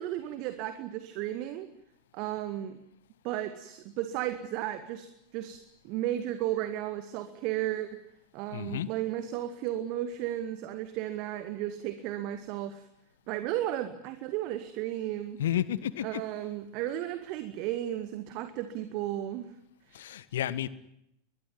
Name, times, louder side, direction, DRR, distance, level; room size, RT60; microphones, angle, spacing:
voice 1, 0.0-1.7 2.1-2.8 3.2-5.6 5.8-8.0 8.3-12.9 13.3-15.4 16.0-19.5 19.9-20.0, right 13 dB, 40° right, 10 dB, 1.9 m, -34 dB
voice 2, 8.5-8.9 15.4-16.2 19.9-20.7, left 11 dB, 60° left, 18 dB, 1.3 m, -31 dB
22.0 x 22.0 x 9.2 m, 0.78 s
figure-of-eight pair, 90°, 0 cm